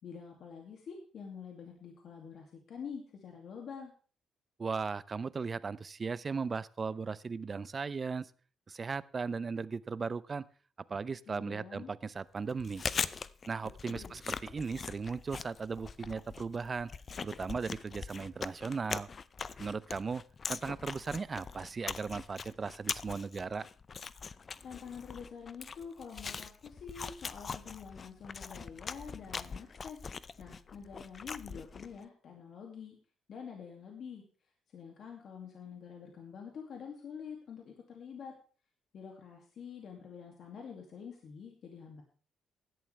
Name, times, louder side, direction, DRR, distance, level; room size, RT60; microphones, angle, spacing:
voice 1, 0.0-3.9 11.3-11.9 13.9-14.2 24.6-30.0 30.4-33.0 33.3-34.2 34.7-38.4 38.9-42.0, left 6 dB, 60° left, 2 dB, 2.3 m, -47 dB
voice 2, 4.6-8.3 8.7-10.5 10.9-12.8 13.5-16.9 17.2-19.1 19.6-20.2 20.5-23.7, right 5 dB, 35° right, 19 dB, 0.6 m, -37 dB
Chewing mastication, 12.5-32.0, left 5 dB, 40° left, 0.5 m, -42 dB
16.0 x 11.0 x 3.3 m, 0.39 s
cardioid pair, 90°, 0 cm